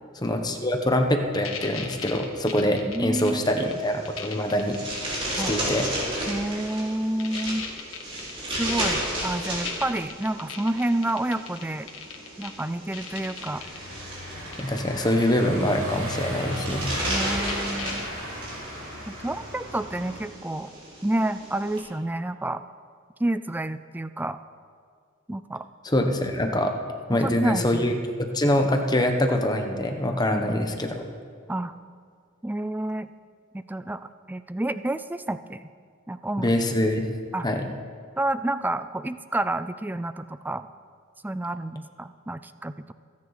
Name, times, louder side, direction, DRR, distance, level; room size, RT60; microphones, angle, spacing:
voice 1, 0.2-4.8 5.5-5.8 14.6-16.8 25.8-26.7 27.1-27.9 28.2-31.0 36.4-37.1 37.4-37.7, left 1 dB, 20° left, 4 dB, 1.1 m, -24 dB
sound 1, 1.3-3.7 4.0-5.0 5.3-6.2 6.7-6.8 7.2-12.6 12.9-13.8 14.5-14.8 16.5-16.6 16.9-17.0 17.2-18.1, left 7 dB, 65° left, 1.7 m, -37 dB
voice 2, 2.9-3.7 5.4-5.6 6.3-7.7 8.6-11.9 12.4-13.6 17.1-18.1 19.1-20.7 21.0-22.6 23.2-24.4 25.3-25.7 27.1-28.0 30.3-30.5 31.5-31.7 32.4-33.1 33.5-34.0 34.3-35.7 36.1-36.5 37.3-37.5 38.2-40.7 41.2-42.9, right 1 dB, 10° right, 12 dB, 0.3 m, -29 dB
sound 2, 3.6-21.8, right 1 dB, 25° right, 4.8 m, -34 dB
Car passing by / Engine, 13.5-20.2, equal, 80° right, 4.2 m, -35 dB
27.5 x 9.6 x 4.2 m, 2.1 s
head